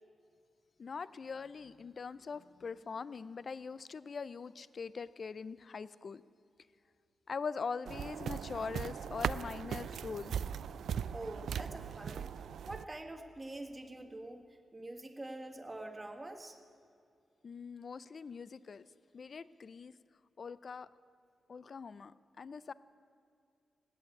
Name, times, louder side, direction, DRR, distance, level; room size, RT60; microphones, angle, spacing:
voice 1, 0.8-6.2 7.3-10.3 17.4-18.9 19.1-19.9 20.4-20.9 21.5-22.7, left 5 dB, 50° left, 17 dB, 0.4 m, -42 dB
sound 1, 7.9-12.8, right 8 dB, 85° right, 0.3 m, -39 dB
voice 2, 11.1-14.4 14.7-16.6, right 2 dB, 20° right, 5 dB, 1.5 m, -45 dB
17.0 x 9.1 x 9.5 m, 2.3 s
wide cardioid pair, 110°, 0 cm